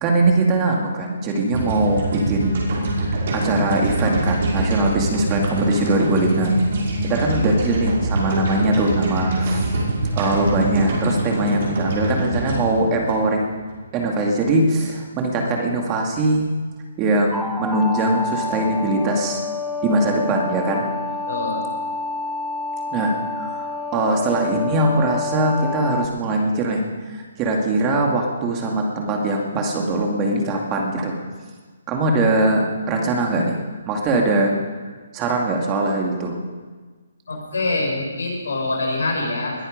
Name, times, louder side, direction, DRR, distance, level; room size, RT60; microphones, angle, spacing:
voice 1, 0.0-2.5 3.3-6.5 7.0-9.8 10.1-13.6 13.9-16.5 17.0-19.4 19.8-20.9 22.9-26.8 27.1-31.2 31.9-33.6 33.9-34.5 35.1-36.3, right 2 dB, 20° right, 1 dB, 2.4 m, -21 dB
sound 1, 1.5-13.8, right 1 dB, 55° right, 5.5 m, -24 dB
sound 2, 17.3-26.1, left 3 dB, ahead, 0.8 m, -28 dB
voice 2, 21.3-21.6 37.3-39.5, left 2 dB, 80° left, -1 dB, 6.4 m, -24 dB
21.0 x 10.5 x 5.2 m, 1.4 s
hypercardioid pair, 150°, 0 cm